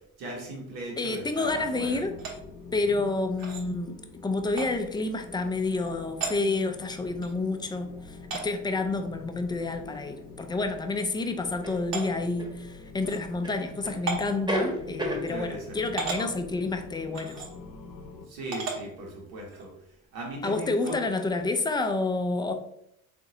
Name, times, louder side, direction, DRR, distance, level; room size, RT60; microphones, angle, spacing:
voice 1, 0.2-2.0 2.9-3.0 15.3-15.8 16.2-16.3 18.3-19.7 20.1-21.0, right 1 dB, 80° right, -1 dB, 1.1 m, -38 dB
voice 2, 1.0-2.1 2.7-4.0 4.2-8.2 8.4-17.3 20.4-22.5, left 3 dB, 10° left, 6 dB, 0.4 m, -29 dB
sound 1, 1.4-18.3, left 4 dB, 55° left, 0.8 m, -46 dB
sound 2, 2.2-2.3 3.4-3.6 4.6-4.7 5.8-5.9 6.2-6.4 7.2-7.3 8.3-8.5 9.7-9.8 10.2-10.3 11.0-11.1 11.9-12.1 13.0-13.2 14.1-14.3 15.3-15.4 16.0-16.2 17.1-17.5 18.5-18.8 19.5-19.6 20.8-21.0, right 4 dB, 60° right, 1.1 m, -33 dB
sound 3, 9.9-10.0 11.6-12.5 13.4-14.0 14.3-15.3, equal, 10° right, 0.9 m, -31 dB
3.7 x 2.6 x 2.6 m, 0.76 s
hypercardioid pair, 55°, 40 cm